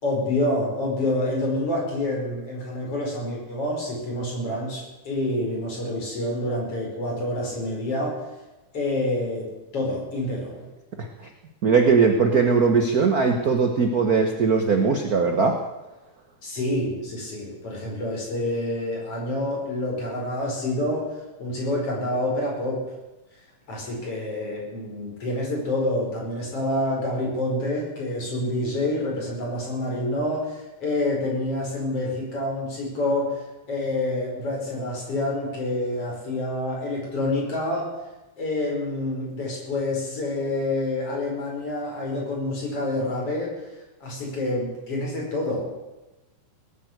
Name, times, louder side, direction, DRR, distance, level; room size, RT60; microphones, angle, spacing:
voice 1, 0.0-8.2 8.7-10.7 16.4-21.1 21.4-22.9 23.7-33.4 33.7-37.9 38.4-43.5 44.0-45.7, left 1 dB, 50° left, -2 dB, 6.0 m, -27 dB
voice 2, 11.0-11.3 11.6-15.6, right 5 dB, 60° right, 4 dB, 0.9 m, -20 dB
19.0 x 9.1 x 8.0 m, 1.1 s
omnidirectional pair, 3.5 m